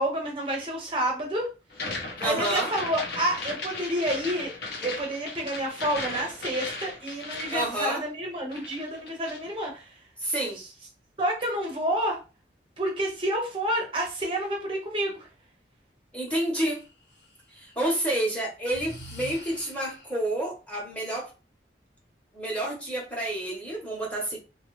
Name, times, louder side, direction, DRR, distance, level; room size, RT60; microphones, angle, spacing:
voice 1, 0.0-1.5 2.2-4.5 4.8-10.0 11.2-12.2 12.8-15.3, right 1 dB, 30° right, 1 dB, 0.6 m, -29 dB
sound 1, 1.7-8.3 8.5-9.5, left 3 dB, 60° left, 0.6 m, -36 dB
voice 2, 2.2-2.7 7.5-8.0 10.2-10.6 16.1-16.8 17.5-21.3 22.3-24.4, right 1 dB, 5° left, -2 dB, 0.8 m, -29 dB
Breathing, 16.7-17.8 18.7-20.3, left 1 dB, 80° left, 1.0 m, -45 dB
2.5 x 2.3 x 3.0 m, 0.31 s
head